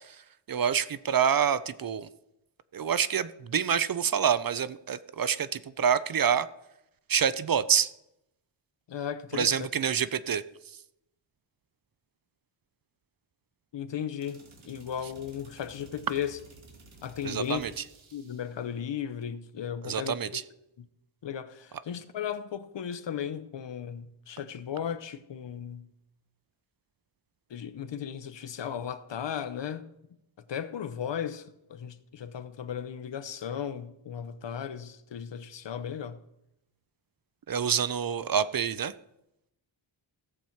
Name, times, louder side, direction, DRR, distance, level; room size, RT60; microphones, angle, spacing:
voice 1, 0.5-2.1 2.7-6.5 7.1-7.9 9.3-10.4 17.2-17.7 19.8-20.4 37.5-38.9, right 8 dB, 50° right, 0.5 m, -27 dB
voice 2, 8.9-9.6 13.7-16.4 17.0-17.6 18.1-20.4 20.8-20.9 21.2-25.9 27.5-29.8 30.5-36.2, left 8 dB, 65° left, 0.8 m, -36 dB
sound 1, 14.2-18.7, right 3 dB, 75° right, 2.1 m, -54 dB
16.0 x 7.2 x 4.5 m
wide cardioid pair, 115°, 48 cm